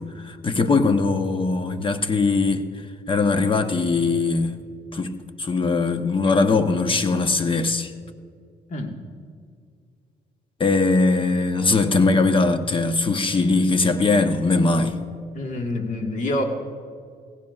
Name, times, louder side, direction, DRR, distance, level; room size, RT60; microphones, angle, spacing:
voice 1, 0.0-2.7 3.1-4.6 4.9-7.9 10.6-15.0, left 3 dB, 30° left, 1.0 m, -21 dB
voice 2, 15.3-16.4, left 1 dB, 50° left, 1.7 m, -26 dB
18.5 x 16.0 x 2.4 m
cardioid pair, 95°, 17 cm